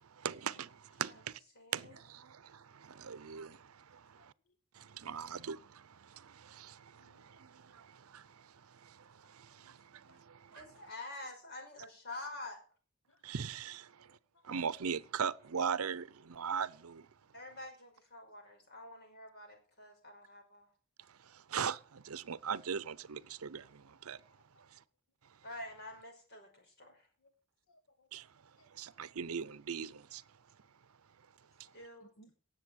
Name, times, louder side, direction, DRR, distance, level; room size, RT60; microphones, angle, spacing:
voice 1, 0.0-1.4 1.7-4.3 4.7-10.6 13.2-14.2 14.4-17.1 21.1-24.2 24.7-24.8 28.1-28.3 28.7-30.2, right 7 dB, 85° right, 0.6 m, -40 dB
voice 2, 1.6-1.9 10.5-12.6 17.3-20.7 25.4-27.1 31.7-32.1, left 2 dB, 50° left, 5.4 m, -48 dB
voice 3, 4.1-4.6 7.0-7.4 9.5-9.8 10.1-10.2 13.1-13.2 14.1-14.5 24.3-24.6 27.2-27.3 27.7-28.2 28.6-28.7 31.6-32.3, equal, 70° left, 1.1 m, -67 dB
18.0 x 7.5 x 6.3 m
head